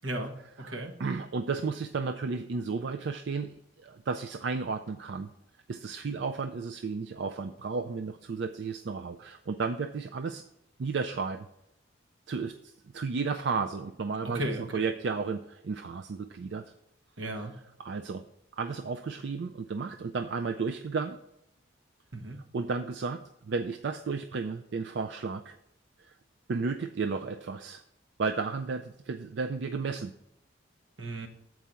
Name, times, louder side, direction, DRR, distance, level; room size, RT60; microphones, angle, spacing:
voice 1, 0.0-0.9 14.3-14.9 17.2-17.5 22.1-22.4 31.0-31.3, right 1 dB, 85° right, 4 dB, 1.3 m, -35 dB
voice 2, 0.6-5.3 5.7-10.4 10.8-11.5 12.3-16.7 17.8-18.2 18.6-21.2 22.5-25.6 26.5-27.8 28.2-30.1, right 4 dB, 65° right, 7 dB, 0.4 m, -33 dB
7.5 x 4.7 x 6.8 m, 0.83 s
head